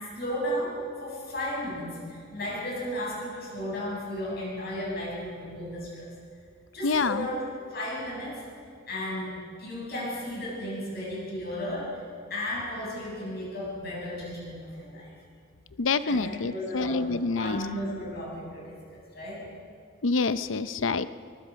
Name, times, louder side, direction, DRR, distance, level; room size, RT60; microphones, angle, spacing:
voice 1, 0.1-6.1 6.7-8.4 8.9-12.0 12.3-15.1 16.0-17.1 17.3-18.8 19.1-19.5, left 1 dB, 55° left, -4 dB, 7.9 m, -34 dB
voice 2, 6.8-7.2 15.8-17.6 20.0-21.1, left 4 dB, 80° left, 13 dB, 0.7 m, -27 dB
23.5 x 22.0 x 5.2 m, 2.1 s
head